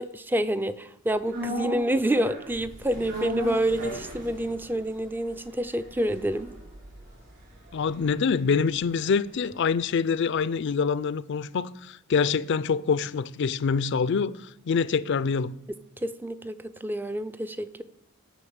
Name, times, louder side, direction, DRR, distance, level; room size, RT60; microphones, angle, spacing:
voice 1, 0.0-6.5 16.0-17.8, right 1 dB, 10° right, 0.4 m, -28 dB
sound 1, 1.3-9.6 9.9-10.0, right 1 dB, 55° right, 4.6 m, -38 dB
voice 2, 7.7-15.5, left 5 dB, 60° left, 0.4 m, -25 dB
9.2 x 6.0 x 7.9 m
head